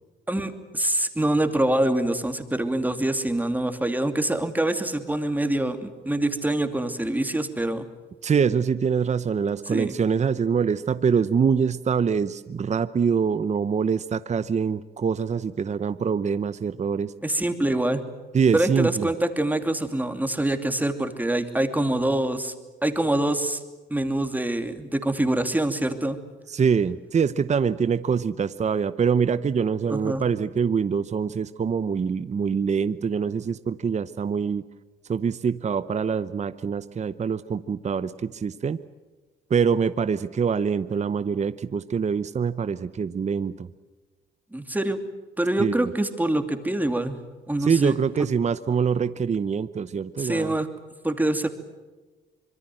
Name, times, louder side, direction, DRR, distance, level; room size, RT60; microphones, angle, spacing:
voice 1, 0.3-7.9 9.7-9.9 17.2-18.0 18.5-22.5 22.8-23.6 23.9-26.2 29.9-30.2 44.5-45.0 45.4-47.1 47.5-48.0 50.2-50.7 51.0-51.5, right 1 dB, 10° right, 7 dB, 2.7 m, -25 dB
voice 2, 8.2-17.1 18.3-19.1 26.5-34.6 35.1-38.8 39.5-43.7 45.6-45.9 47.6-50.5, right 6 dB, 35° right, 13 dB, 0.8 m, -24 dB
25.5 x 22.0 x 7.8 m, 1.3 s
cardioid pair, 90°, 20 cm